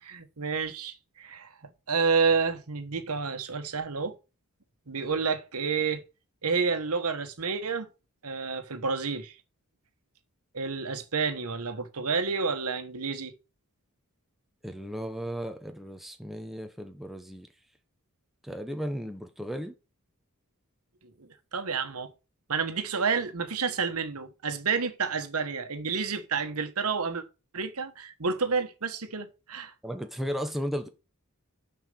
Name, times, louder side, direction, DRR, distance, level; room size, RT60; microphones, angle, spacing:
voice 1, 0.0-1.5 1.9-4.2 4.9-6.0 6.4-7.9 8.2-9.3 10.5-13.3 21.5-22.1 22.5-27.2 27.5-29.7, right 5 dB, 80° right, 1.3 m, -29 dB
voice 2, 14.6-17.5 18.4-19.8 29.8-30.9, equal, ahead, 0.9 m, -35 dB
6.5 x 4.9 x 6.9 m
head